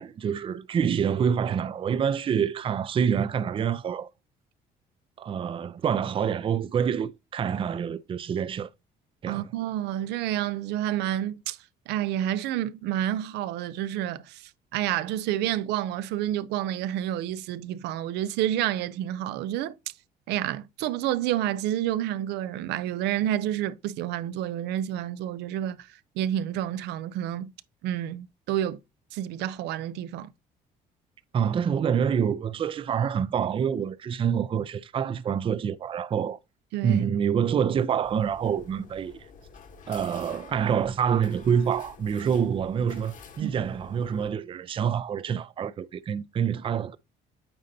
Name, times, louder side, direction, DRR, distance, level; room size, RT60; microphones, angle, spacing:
voice 1, 0.0-4.1 5.2-8.7 9.2-9.5 31.3-36.4 36.8-39.1 39.9-47.0, right 7 dB, 30° right, 0.4 m, -26 dB
voice 2, 9.3-11.6 11.9-19.8 20.3-25.9 26.2-27.5 27.8-28.8 29.1-30.3 36.7-37.0 43.4-43.5, right 12 dB, 85° right, 0.5 m, -29 dB
sound 1, 38.0-44.3, left 5 dB, 50° left, 1.1 m, -49 dB
8.7 x 4.1 x 2.7 m
cardioid pair, 110°, 17 cm